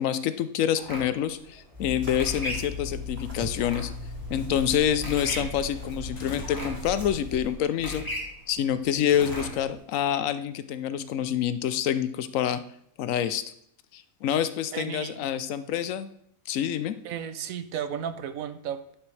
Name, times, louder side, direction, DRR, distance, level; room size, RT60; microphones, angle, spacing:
voice 1, 0.0-3.9 4.3-8.0 8.5-12.6 13.0-13.4 13.9-16.1 16.5-17.0, left 9 dB, 70° left, 12 dB, 0.9 m, -27 dB
sound 1, 0.8-9.7, left 1 dB, 15° left, 1.6 m, -39 dB
sound 2, 1.7-7.5, left 2 dB, 45° right, 2.5 m, -37 dB
sound 3, 6.2-6.8 9.1-10.0, left 2 dB, 30° left, 1.1 m, -41 dB
voice 2, 14.7-15.3 17.0-18.9, right 8 dB, 70° right, 11 dB, 1.0 m, -34 dB
11.0 x 6.0 x 3.2 m, 0.72 s
omnidirectional pair, 1.5 m